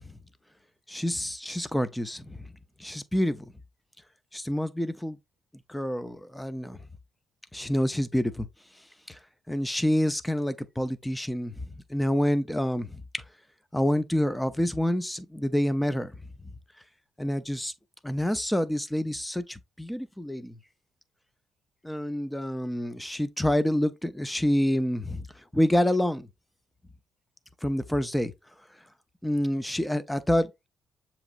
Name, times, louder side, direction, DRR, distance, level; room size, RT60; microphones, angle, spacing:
voice 1, 0.9-2.4 2.8-3.5 4.3-5.2 5.7-6.8 7.5-8.5 9.1-9.2 9.5-11.6 11.9-13.0 13.7-16.1 17.2-17.7 18.0-20.6 21.8-25.3 25.5-26.3 27.6-28.3 29.2-30.5, equal, 5° left, 0.6 m, -27 dB
7.0 x 3.0 x 2.5 m
cardioid pair, 90°, 0 cm